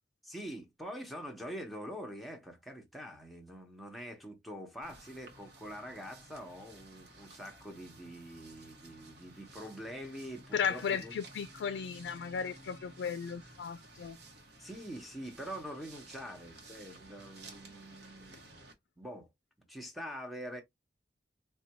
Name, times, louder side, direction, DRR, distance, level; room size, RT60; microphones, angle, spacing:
voice 1, 0.2-11.1 14.6-19.3 19.7-20.6, equal, ahead, 0.8 m, -45 dB
sound 1, 4.8-18.7, right 2 dB, 65° right, 1.0 m, -54 dB
voice 2, 10.5-14.2, left 6 dB, 75° left, 0.3 m, -35 dB
4.1 x 2.2 x 2.7 m
head